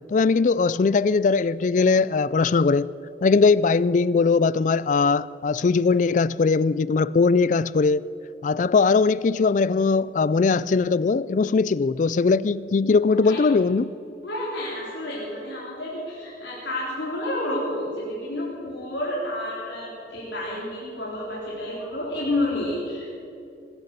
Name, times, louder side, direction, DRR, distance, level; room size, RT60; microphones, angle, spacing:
voice 1, 0.1-2.9 3.2-8.1 8.4-13.9, left 4 dB, 45° left, 0.3 m, -20 dB
voice 2, 13.1-13.5 14.2-23.1, left 1 dB, 90° left, 3.8 m, -30 dB
20.5 x 10.5 x 6.7 m
head